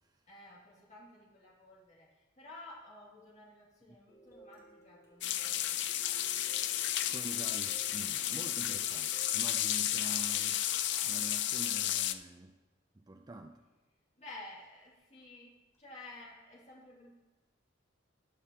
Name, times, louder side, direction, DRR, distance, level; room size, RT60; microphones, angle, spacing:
voice 1, 0.3-7.1 8.8-9.1 9.8-10.0 14.2-17.1, left 2 dB, 35° left, -5 dB, 2.6 m, -53 dB
sound 1, 4.1-11.0 15.2-15.3 15.7-15.8, right 1 dB, 15° left, 2.2 m, -59 dB
sound 2, 5.2-12.1, left 12 dB, 60° left, 0.5 m, -32 dB
voice 2, 7.1-10.7 11.0-12.5 12.9-13.6, right 2 dB, 20° right, 4 dB, 0.4 m, -46 dB
19.0 x 6.6 x 3.0 m, 1.2 s
head